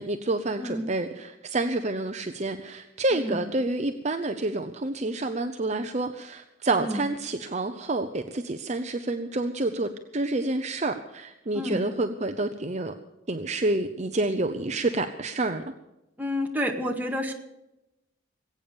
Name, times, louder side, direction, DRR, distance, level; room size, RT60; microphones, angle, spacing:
voice 1, 0.0-12.9 13.3-15.6, right 2 dB, 35° right, 7 dB, 0.8 m, -28 dB
voice 2, 0.6-0.9 3.1-3.4 6.8-7.0 11.5-11.9 16.2-17.3, equal, 10° right, 1 dB, 1.9 m, -30 dB
20.5 x 8.9 x 6.9 m, 0.93 s
head